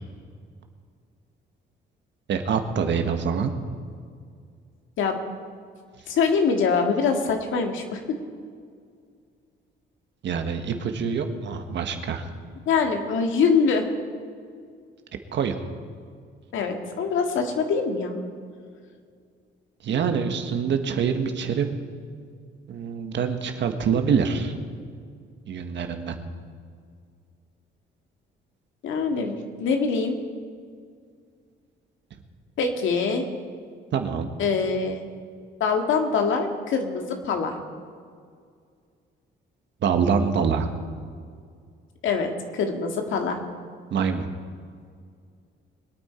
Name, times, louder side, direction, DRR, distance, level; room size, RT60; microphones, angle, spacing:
voice 1, 2.3-3.5 10.2-12.3 15.3-15.6 19.8-21.8 22.7-24.5 25.5-26.2 33.9-34.3 39.8-40.7 43.9-44.3, right 6 dB, 65° right, 6 dB, 1.5 m, -25 dB
voice 2, 6.1-8.0 12.7-13.9 16.5-18.2 28.8-30.2 32.6-33.2 34.4-35.0 35.6-37.5 42.0-43.4, left 5 dB, 80° left, 4 dB, 1.9 m, -24 dB
23.0 x 9.1 x 4.4 m, 2.1 s
cardioid pair, 90°, 20 cm